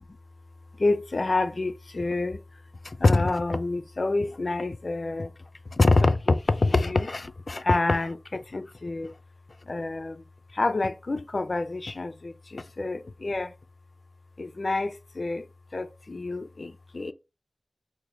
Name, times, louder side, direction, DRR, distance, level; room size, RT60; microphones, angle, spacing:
voice 1, 0.8-2.4 2.8-5.3 5.7-9.1 9.7-10.2 10.5-13.5 14.4-15.5 15.7-17.1, left 2 dB, 50° left, 0.3 m, -26 dB
3.2 x 2.1 x 3.6 m
wide cardioid pair, 60°, 0 cm